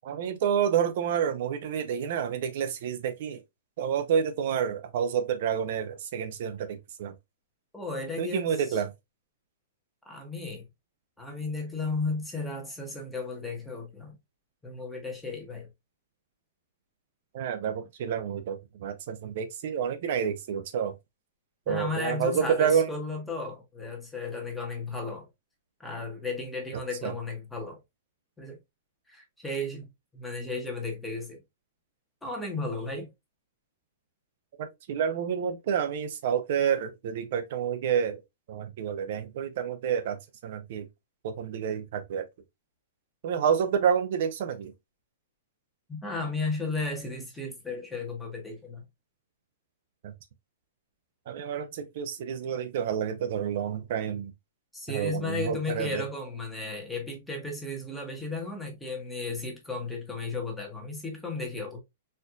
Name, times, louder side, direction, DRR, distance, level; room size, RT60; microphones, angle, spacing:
voice 1, 0.0-3.4 3.8-7.1 8.2-8.9 17.3-20.9 21.7-22.9 27.0-27.1 34.6-38.2 38.5-40.2 40.4-40.9 41.2-42.3 43.2-44.7 51.3-54.3 54.9-56.0, right 8 dB, 55° right, 0.5 m, -29 dB
voice 2, 7.7-8.8 10.0-10.6 11.2-14.2 14.6-15.7 21.7-25.3 25.8-27.8 28.4-28.6 29.1-29.9 30.1-31.4 32.2-33.1 45.9-48.8 54.7-61.8, left 3 dB, 5° left, 1.0 m, -34 dB
4.2 x 2.5 x 2.3 m
hypercardioid pair, 155°, 0 cm